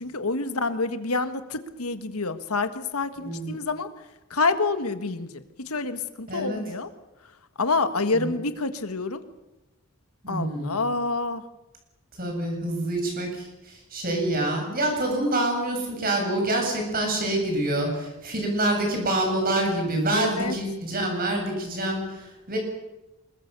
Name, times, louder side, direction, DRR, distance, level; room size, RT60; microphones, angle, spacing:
voice 1, 0.0-3.9 4.3-6.9 7.6-9.2 10.3-11.4 20.1-20.6, left 3 dB, 85° left, 10 dB, 1.6 m, -27 dB
voice 2, 3.2-3.5 6.3-6.6 8.1-8.3 10.2-10.8 12.2-22.6, right 1 dB, 40° right, 2 dB, 7.3 m, -26 dB
25.5 x 22.0 x 6.9 m, 1.0 s
head